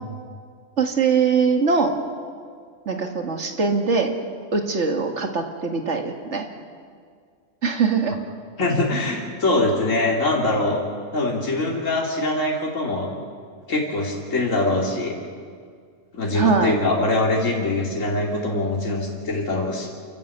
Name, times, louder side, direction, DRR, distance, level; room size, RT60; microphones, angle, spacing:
voice 1, 0.8-1.9 2.9-4.1 4.5-6.5 7.6-8.2 16.3-16.8, right 5 dB, 65° right, 4 dB, 2.3 m, -22 dB
voice 2, 8.6-10.8 11.1-13.1 13.7-15.1 16.1-19.9, left 2 dB, 85° left, -1 dB, 3.0 m, -23 dB
29.0 x 14.5 x 8.2 m, 2.1 s
omnidirectional pair, 1.3 m